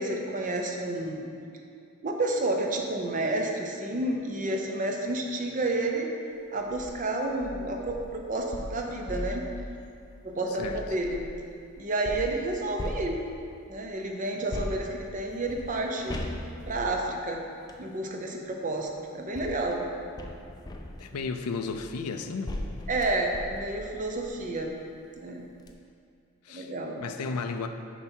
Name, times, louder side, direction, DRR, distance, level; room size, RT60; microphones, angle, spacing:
voice 1, 0.0-1.3 2.0-6.1 6.5-9.5 10.2-11.2 11.8-13.2 13.7-16.2 16.7-17.4 17.8-19.9 21.1-21.2 22.9-24.7 25.2-25.5 26.5-27.0, right 2 dB, 35° right, 2 dB, 0.7 m, -30 dB
sound 1, 6.6-6.9 7.4-11.4 12.1-13.6 14.5-17.9 18.8-24.7 25.2-25.3 25.6-25.7, left 1 dB, 15° left, 0.4 m, -40 dB
voice 2, 21.0-22.5 26.5-26.7 27.0-27.7, left 4 dB, 85° left, 7 dB, 0.5 m, -33 dB
7.0 x 5.6 x 4.5 m, 2.4 s
head